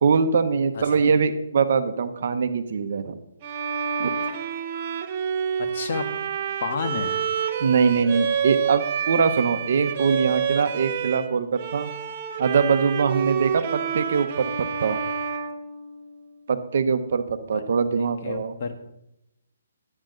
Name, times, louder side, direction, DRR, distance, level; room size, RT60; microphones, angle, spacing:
voice 1, 0.0-3.2 4.0-4.1 7.6-11.9 12.4-14.5 14.8-15.0 16.5-18.5, right 5 dB, 55° right, 10 dB, 1.0 m, -22 dB
voice 2, 0.7-1.1 5.6-6.1 6.6-7.2 18.0-18.8, left 5 dB, 50° left, 5 dB, 1.5 m, -31 dB
Bowed string instrument, 3.4-11.3 11.6-16.4, right 7 dB, 30° right, 1.0 m, -28 dB
11.0 x 9.9 x 3.9 m, 0.85 s
hypercardioid pair, 160°, 0 cm